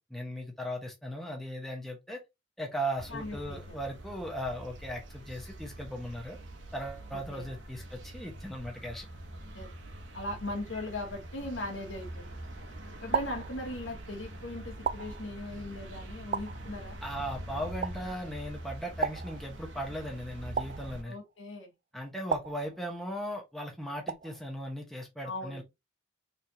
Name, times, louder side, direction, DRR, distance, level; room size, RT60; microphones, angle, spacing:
voice 1, 0.0-2.2 2.6-6.4 6.7-9.1 17.0-21.2 21.9-25.6, equal, ahead, 0.9 m, -38 dB
sound 1, 3.0-21.0, right 1 dB, 70° right, 1.0 m, -44 dB
voice 2, 3.1-3.7 7.3-7.5 9.5-9.7 10.1-12.4 13.0-17.0 21.1-21.7 25.2-25.6, left 1 dB, 75° left, 1.4 m, -39 dB
sound 2, 12.0-12.5 13.1-14.1 14.8-15.7 16.3-17.2 17.8-18.5 19.0-19.9 20.6-21.4 22.3-23.3 24.1-24.7, right 6 dB, 40° right, 0.4 m, -36 dB
4.2 x 3.3 x 2.8 m
head